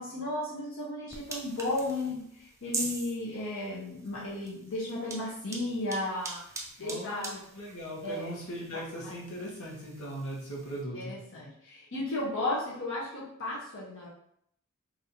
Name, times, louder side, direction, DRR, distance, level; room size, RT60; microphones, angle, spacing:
voice 1, 0.0-6.4 6.8-7.3 8.0-8.3 10.9-14.1, left 2 dB, 60° left, -7 dB, 1.0 m, -34 dB
sound 1, 1.1-10.8, right 3 dB, 15° right, 0.5 m, -43 dB
voice 2, 6.8-11.2, equal, 85° left, -4 dB, 1.2 m, -39 dB
3.2 x 2.7 x 4.1 m, 0.70 s
head